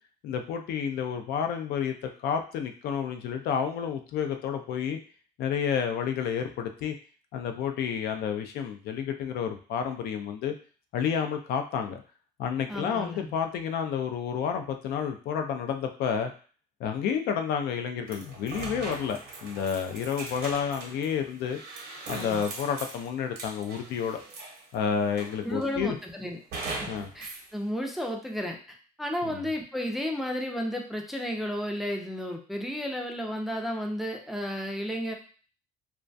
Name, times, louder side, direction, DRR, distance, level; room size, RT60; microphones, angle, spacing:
voice 1, 0.2-5.0 5.4-6.9 7.3-10.5 10.9-12.0 12.4-16.3 16.8-21.6 22.1-24.2 24.7-26.0 26.9-27.1 29.2-29.4, left 7 dB, 70° left, 6 dB, 0.4 m, -30 dB
voice 2, 12.7-13.3 22.1-22.4 25.4-26.4 26.8-28.6 29.0-35.1, equal, ahead, 2 dB, 0.4 m, -33 dB
sound 1, 18.1-24.7 25.2-25.8 26.5-27.5, right 3 dB, 70° right, 0.7 m, -40 dB
2.2 x 2.2 x 2.5 m, 0.40 s
cardioid pair, 110°, 17 cm